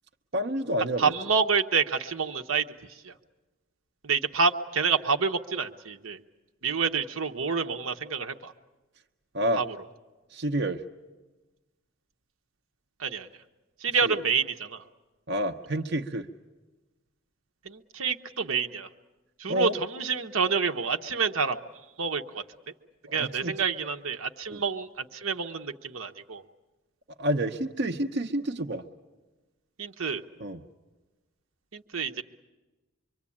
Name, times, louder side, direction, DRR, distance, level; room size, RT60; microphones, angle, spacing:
voice 1, 0.3-1.1 9.3-9.6 10.3-10.8 14.0-14.1 15.3-16.3 19.5-19.7 23.1-23.5 24.5-24.6 27.2-28.8 30.4-30.6, right 1 dB, 55° right, 4 dB, 0.8 m, -29 dB
voice 2, 1.0-3.1 4.0-6.2 6.6-8.5 9.6-9.8 13.0-13.3 13.8-14.8 17.6-18.9 19.4-21.6 22.0-22.4 23.1-26.4 29.8-30.2 31.7-32.2, right 5 dB, 80° right, 6 dB, 1.1 m, -28 dB
24.5 x 24.5 x 8.6 m, 1.2 s
head